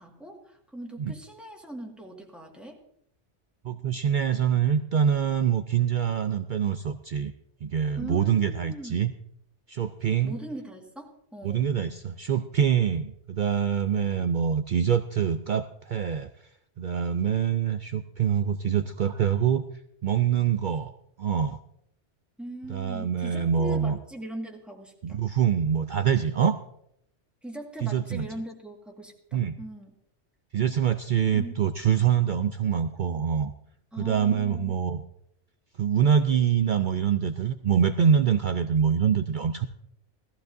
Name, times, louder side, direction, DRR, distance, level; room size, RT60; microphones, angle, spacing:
voice 1, 0.0-2.8 8.0-9.0 10.2-11.7 22.4-25.3 27.4-29.9 31.3-31.7 33.9-34.7, right 1 dB, ahead, 0 dB, 1.7 m, -40 dB
voice 2, 3.6-7.3 7.6-9.1 9.7-10.3 11.4-16.3 16.8-19.6 20.0-20.9 21.2-21.6 22.7-24.0 25.0-26.6 27.8-28.2 29.3-29.6 30.5-33.5 34.0-35.0 35.8-39.7, right 8 dB, 55° right, 9 dB, 0.6 m, -25 dB
17.5 x 14.5 x 2.6 m, 0.74 s
omnidirectional pair, 1.2 m